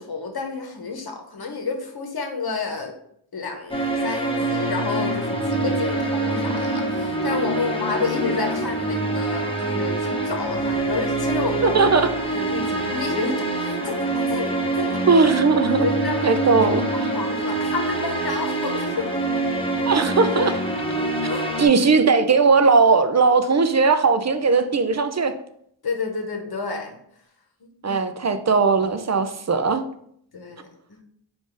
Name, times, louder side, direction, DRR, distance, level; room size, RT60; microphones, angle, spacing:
voice 1, 0.0-2.9 3.3-11.9 12.3-15.1 15.8-16.4 16.9-19.1 21.3-21.5 25.8-27.0 27.8-28.0 30.3-30.7, left 4 dB, 50° left, 4 dB, 1.0 m, -30 dB
sound 1, 3.7-21.7, right 2 dB, 10° left, 1.1 m, -25 dB
voice 2, 11.6-12.1 15.1-15.9 16.2-17.1 19.9-20.6 21.6-25.3 27.8-29.8, right 4 dB, 35° right, 9 dB, 0.5 m, -18 dB
4.7 x 2.6 x 3.7 m, 0.69 s
cardioid pair, 40°, 50 cm